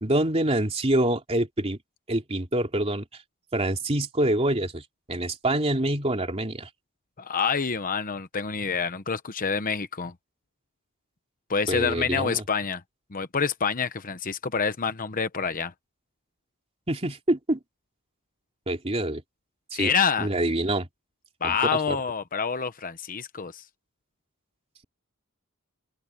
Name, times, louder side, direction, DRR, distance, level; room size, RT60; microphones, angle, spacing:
voice 1, 0.0-1.8 2.1-3.0 3.5-4.8 5.1-6.7 11.7-12.4 16.9-17.6 18.7-19.2 19.7-19.9 20.2-20.9 21.4-22.0, right 1 dB, 30° right, 3.0 m, -26 dB
voice 2, 7.2-10.1 11.5-12.8 13.1-15.7 19.7-20.3 21.4-23.6, left 6 dB, 40° left, 1.0 m, -27 dB
head